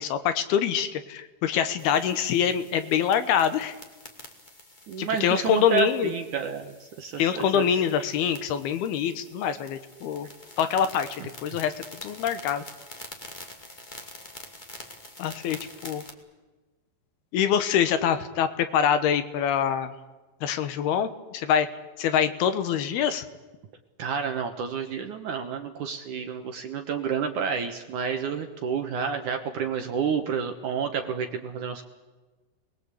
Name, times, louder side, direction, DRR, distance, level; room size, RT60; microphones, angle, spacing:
voice 1, 0.0-3.7 5.0-6.1 7.2-10.3 10.6-12.6 15.2-16.0 17.3-19.9 20.4-21.7 22.0-23.3, left 8 dB, 70° left, 11 dB, 2.9 m, -25 dB
sound 1, 1.8-16.1, left 1 dB, 20° left, 1.4 m, -47 dB
voice 2, 4.9-7.7 24.0-31.9, right 7 dB, 65° right, 5 dB, 2.2 m, -30 dB
28.0 x 21.0 x 8.4 m, 1.2 s
omnidirectional pair, 4.9 m